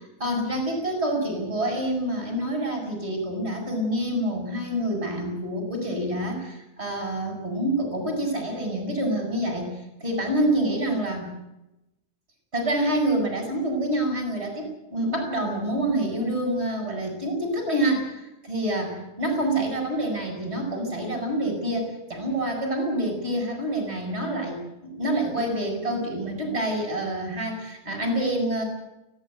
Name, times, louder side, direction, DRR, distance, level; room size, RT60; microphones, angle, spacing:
voice 1, 0.2-9.7 10.0-11.3 12.5-28.6, right 1 dB, 20° right, 4 dB, 8.1 m, -27 dB
29.5 x 12.5 x 9.4 m, 0.91 s
omnidirectional pair, 3.3 m